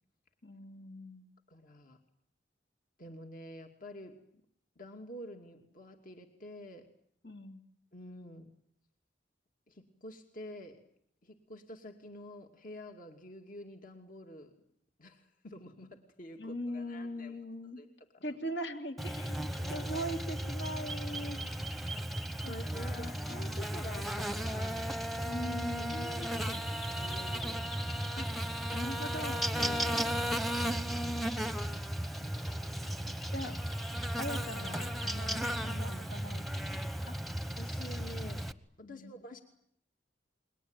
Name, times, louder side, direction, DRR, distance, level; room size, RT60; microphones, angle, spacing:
voice 1, 0.4-1.3 7.2-7.6 16.4-17.8 18.2-21.4 22.4-22.5 22.9-23.5 25.2-26.1 28.2-28.3 28.7-29.5 33.3-33.6 34.2-37.1 38.8-39.2, equal, 70° left, 5 dB, 3.0 m, -41 dB
voice 2, 1.5-2.0 3.0-4.2 4.8-6.9 7.9-8.5 9.7-10.8 11.2-14.5 15.0-17.4 17.8-18.4 19.2-20.1 21.9-25.1 25.5-27.7 29.6-30.1 30.8-31.6 32.0-33.1 37.6-38.5 38.8-39.4, left 1 dB, 50° left, 5 dB, 2.6 m, -49 dB
Buzz, 19.0-38.5, equal, ahead, 1.1 m, -35 dB
29.5 x 22.5 x 9.0 m, 0.68 s
head